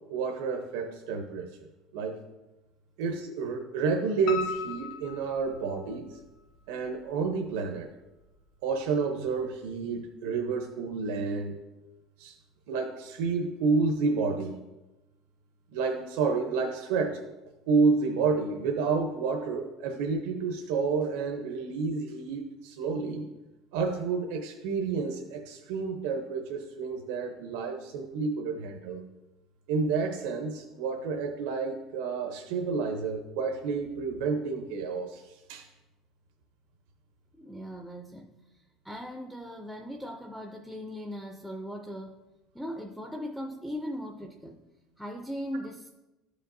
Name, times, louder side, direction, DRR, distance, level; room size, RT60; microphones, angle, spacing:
voice 1, 0.1-1.5 1.9-2.2 3.0-6.2 6.7-7.9 8.6-11.6 12.2-12.4 12.7-14.6 15.7-17.3 17.7-23.3 23.7-29.1 29.7-35.7, right 4 dB, 85° right, 3 dB, 0.7 m, -30 dB
Piano, 4.3-6.2 6.6-7.5 7.8-7.9 8.4-8.5 8.7-8.8, left 7 dB, 50° left, 0.8 m, -37 dB
voice 2, 37.3-42.2 42.5-44.6 45.0-45.9, equal, ahead, 4 dB, 0.3 m, -39 dB
13.0 x 5.1 x 2.6 m, 1.0 s
cardioid pair, 175°, 0 cm